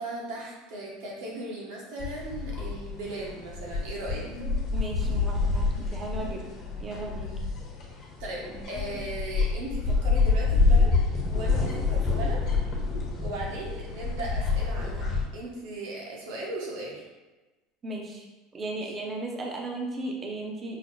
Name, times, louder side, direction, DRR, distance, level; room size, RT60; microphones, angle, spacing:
voice 1, 0.0-4.3 8.2-11.0 11.3-12.5 13.2-17.0, right 2 dB, 80° right, -3 dB, 1.2 m, -37 dB
sound 1, 2.0-15.2, left 4 dB, 45° left, 1.2 m, -27 dB
voice 2, 4.7-6.4 6.8-7.5 17.8-18.3 18.5-20.8, right 2 dB, 30° right, 1 dB, 0.6 m, -36 dB
5.5 x 2.0 x 3.0 m, 1.1 s
supercardioid pair, 110°, 0 cm